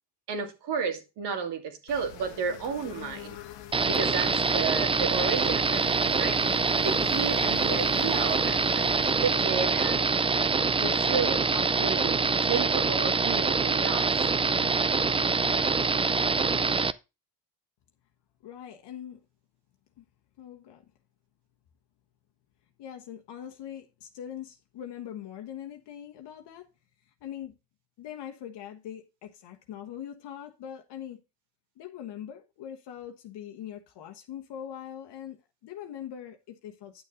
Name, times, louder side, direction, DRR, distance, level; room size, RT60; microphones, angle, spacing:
voice 1, 0.3-3.4 3.8-6.4 6.8-8.8 9.2-10.0 10.7-14.1, right 5 dB, 70° right, 2.6 m, -32 dB
sound 1, 1.9-12.5, left 11 dB, 90° left, 1.4 m, -45 dB
sound 2, 3.7-16.9, right 4 dB, 15° right, 0.4 m, -25 dB
voice 2, 18.4-19.2 20.0-20.1 20.4-20.8 22.8-26.7 27.2-27.6 28.0-31.2 31.8-37.0, left 10 dB, 70° left, 1.3 m, -42 dB
10.5 x 6.8 x 3.7 m
cardioid pair, 95°, 42 cm